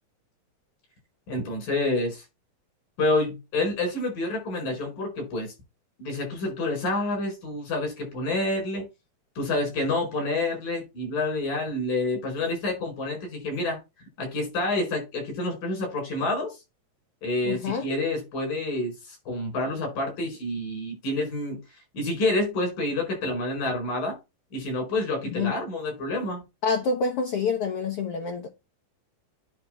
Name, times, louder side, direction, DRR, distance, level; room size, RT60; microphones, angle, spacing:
voice 1, 1.3-2.2 3.0-5.5 6.0-8.8 9.4-13.8 14.2-16.6 17.2-21.6 21.9-24.2 24.5-26.4, left 2 dB, 85° left, 6.2 m, -28 dB
voice 2, 17.4-17.8 25.3-25.5 26.6-28.5, left 5 dB, 65° left, 1.4 m, -27 dB
9.5 x 3.4 x 6.0 m
omnidirectional pair, 3.8 m